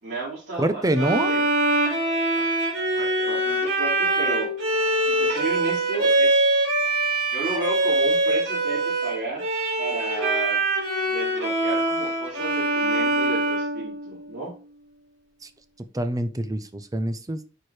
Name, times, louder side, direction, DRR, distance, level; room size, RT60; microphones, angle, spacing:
voice 1, 0.0-1.4 2.3-2.5 2.9-4.5 5.1-6.5 7.3-9.5 9.8-10.6 11.1-14.5, right 3 dB, 55° right, -9 dB, 3.9 m, -33 dB
voice 2, 0.6-1.3 15.9-17.4, right 1 dB, 20° right, 11 dB, 0.7 m, -25 dB
Bowed string instrument, 0.9-14.4, right 2 dB, 70° right, 4.0 m, -23 dB
9.1 x 4.7 x 3.2 m, 0.33 s
head